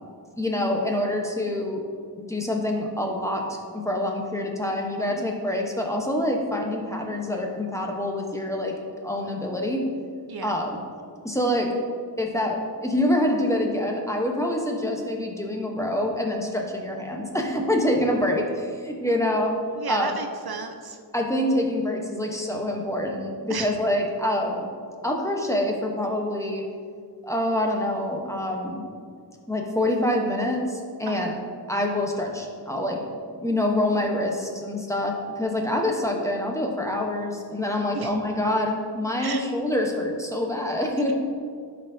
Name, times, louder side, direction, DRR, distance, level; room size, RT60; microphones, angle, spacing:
voice 1, 0.4-1.8 2.2-8.8 9.0-9.8 10.4-10.8 11.2-11.7 12.2-19.5 19.9-20.1 21.1-24.7 25.0-26.6 27.2-28.9 29.5-31.4 31.7-33.0 33.3-41.1, left 1 dB, 5° left, 0 dB, 1.0 m, -26 dB
voice 2, 19.8-21.0 23.5-23.7 31.1-31.3 37.9-38.1 39.2-39.4, right 5 dB, 60° right, 5 dB, 0.6 m, -33 dB
11.0 x 4.5 x 2.7 m, 2.1 s
wide cardioid pair, 60°, 43 cm